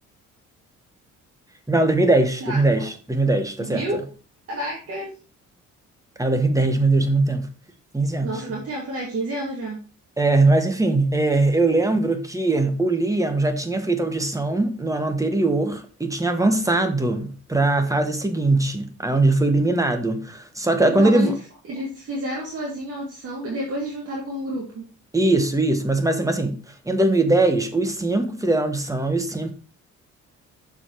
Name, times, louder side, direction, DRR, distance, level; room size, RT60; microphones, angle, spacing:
voice 1, 1.7-4.0 6.2-7.5 7.9-8.6 10.2-21.3 25.1-26.6 26.8-29.5, right 2 dB, 10° right, 1.3 m, -21 dB
voice 2, 2.4-2.9 3.6-4.0 4.5-5.1 8.2-9.8 21.0-21.3 21.7-24.9, right 1 dB, 50° right, 2.1 m, -30 dB
6.4 x 4.8 x 4.5 m
cardioid pair, 90°, 30 cm